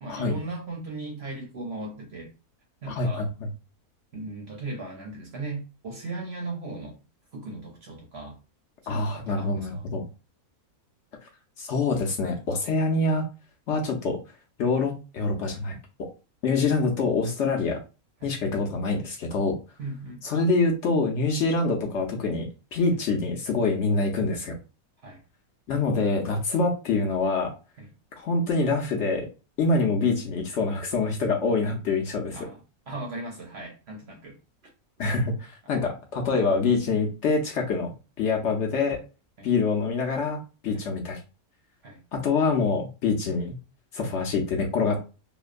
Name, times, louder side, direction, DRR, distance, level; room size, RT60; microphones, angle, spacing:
voice 1, 0.0-2.3 2.8-3.3 4.1-7.0 7.3-8.4 8.8-9.9 18.2-18.4 19.8-20.2 22.9-23.0 25.0-25.2 27.8-27.9 32.3-32.6 32.9-34.4 39.4-39.5 40.7-40.9 41.8-42.0, right 2 dB, 55° right, 0.8 m, -37 dB
voice 2, 2.9-3.3 8.9-10.0 11.6-13.3 13.7-14.2 14.6-16.1 16.4-17.8 18.2-19.6 20.2-24.6 25.7-27.5 28.1-29.3 29.6-32.4 35.0-39.0 39.4-41.2 42.1-43.5 43.9-45.0, left 3 dB, 60° left, 0.8 m, -25 dB
2.9 x 2.1 x 2.4 m
omnidirectional pair, 1.6 m